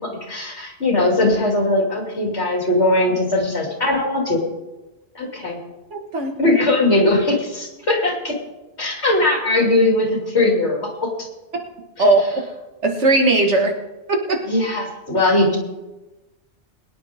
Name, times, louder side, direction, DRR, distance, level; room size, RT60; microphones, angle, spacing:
voice 1, 0.0-4.4 5.1-5.6 6.4-8.4 8.8-11.1 14.5-15.6, left 2 dB, 70° left, 0 dB, 3.3 m, -19 dB
voice 2, 5.9-6.3 12.0-12.4 12.8-13.8 14.1-14.4, right 2 dB, 90° right, 2 dB, 2.1 m, -18 dB
21.5 x 10.0 x 3.6 m, 1.1 s
omnidirectional pair, 1.2 m